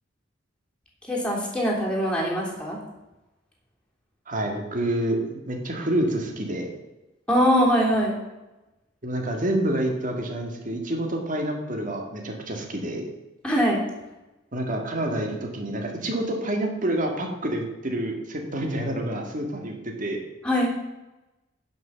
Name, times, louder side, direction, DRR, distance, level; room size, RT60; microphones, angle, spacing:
voice 1, 1.1-2.8 7.3-8.2 13.4-13.8 20.4-20.7, equal, 5° left, -4 dB, 3.1 m, -22 dB
voice 2, 4.3-6.7 9.0-13.1 14.5-20.2, right 1 dB, 40° right, 2 dB, 1.9 m, -28 dB
11.0 x 5.9 x 7.0 m, 1.0 s
head